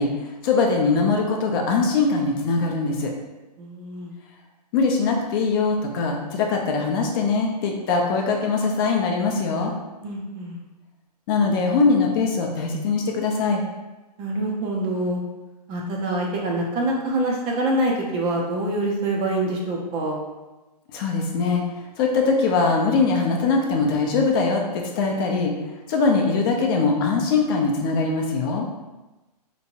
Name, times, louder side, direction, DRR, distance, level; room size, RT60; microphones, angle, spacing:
voice 1, 0.0-3.1 4.7-9.7 11.3-13.6 20.9-21.6 22.0-25.5 25.9-28.6, left 4 dB, 35° left, 1 dB, 0.5 m, -22 dB
voice 2, 3.6-4.1 10.0-10.6 14.2-15.2 15.7-20.2, right 1 dB, 25° right, -1 dB, 0.5 m, -25 dB
3.3 x 3.0 x 2.8 m, 1.1 s
hypercardioid pair, 135°, 21 cm